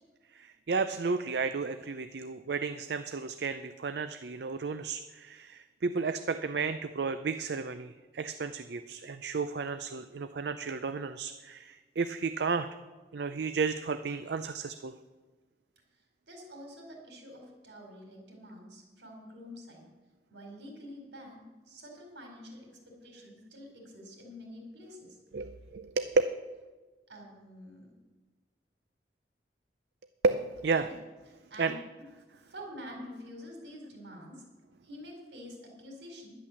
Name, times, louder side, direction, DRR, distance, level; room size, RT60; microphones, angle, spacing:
voice 1, 0.3-12.7 13.1-14.9 25.3-26.2 30.2-30.9 31.6-31.7, right 4 dB, 70° right, 10 dB, 0.5 m, -32 dB
voice 2, 15.9-19.9 20.3-22.7 23.0-25.2 27.1-27.9 30.8-30.9 31.3-31.8 32.4-34.4 34.8-36.3, equal, 85° right, 1 dB, 4.3 m, -47 dB
11.0 x 10.5 x 7.1 m, 1.3 s
head